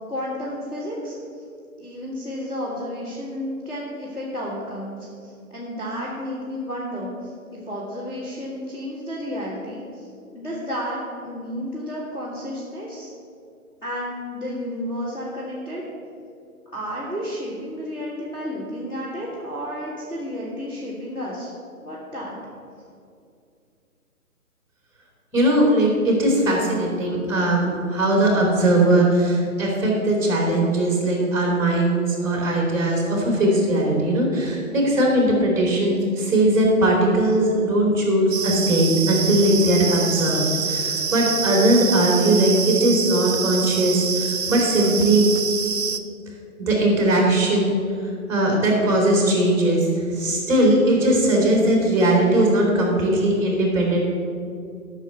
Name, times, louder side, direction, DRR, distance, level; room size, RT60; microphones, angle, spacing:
voice 1, 0.0-1.4 1.8-10.1 10.3-13.1 13.8-15.8 16.7-21.5 21.8-22.3, equal, 10° left, -10 dB, 1.8 m, -32 dB
voice 2, 25.3-45.3 46.6-47.8 48.3-54.1, right 1 dB, 5° right, -2 dB, 2.7 m, -19 dB
sound 1, 38.3-46.0, right 6 dB, 50° right, 0.8 m, -26 dB
12.0 x 6.5 x 6.8 m, 2.4 s
figure-of-eight pair, 140°, 44 cm